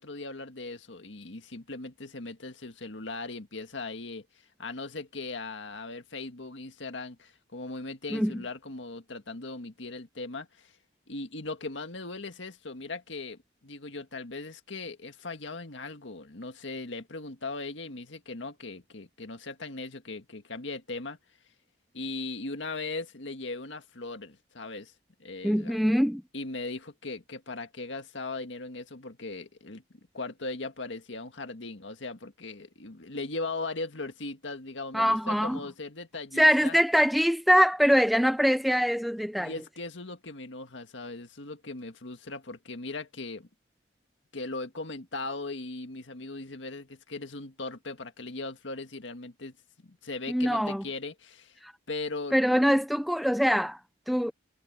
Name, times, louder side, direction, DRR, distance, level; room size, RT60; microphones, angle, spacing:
voice 1, 0.0-4.3 4.6-10.7 11.1-21.2 21.9-24.9 25.2-25.7 26.3-29.8 30.1-36.8 39.4-43.5 44.3-49.5 49.8-51.6 51.9-52.6, left 3 dB, 85° left, 1.8 m, -38 dB
voice 2, 8.1-8.4 25.4-26.2 34.9-35.6 36.4-39.5 50.3-50.9 51.6-51.7 52.3-53.8 54.1-54.3, equal, ahead, 0.7 m, -23 dB
head